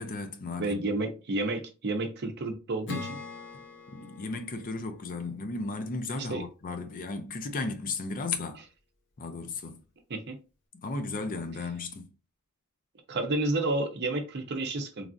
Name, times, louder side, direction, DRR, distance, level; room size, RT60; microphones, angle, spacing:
voice 1, 0.0-0.8 3.9-8.6 9.2-9.8 10.8-12.1, left 3 dB, 40° left, 0.5 m, -35 dB
voice 2, 0.6-3.2 6.2-6.4 10.1-10.4 13.1-15.1, right 2 dB, 50° right, 0.6 m, -30 dB
Acoustic guitar / Strum, 2.9-6.3, left 4 dB, 55° left, 0.9 m, -43 dB
3.2 x 2.4 x 2.5 m
head